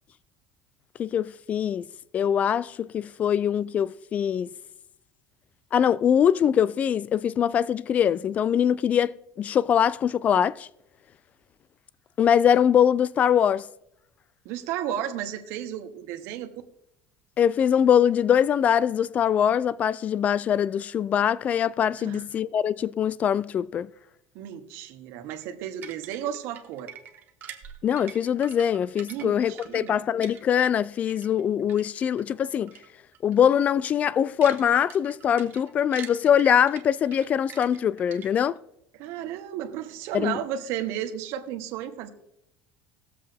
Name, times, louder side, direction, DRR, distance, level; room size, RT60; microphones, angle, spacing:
voice 1, 1.0-1.9 2.1-4.5 5.7-10.7 12.2-13.7 17.4-23.9 27.8-32.7 33.2-38.6 40.1-40.4, left 9 dB, 30° left, 0.4 m, -23 dB
voice 2, 14.4-16.5 22.0-22.3 24.3-26.9 29.1-30.0 39.0-42.1, right 10 dB, 65° right, 1.5 m, -33 dB
sound 1, 25.3-30.8 31.1-32.2 32.7-32.9 33.1-33.4 33.8-38.6, right 9 dB, 40° right, 1.7 m, -45 dB
20.0 x 7.5 x 3.4 m
cardioid pair, 145°, 5 cm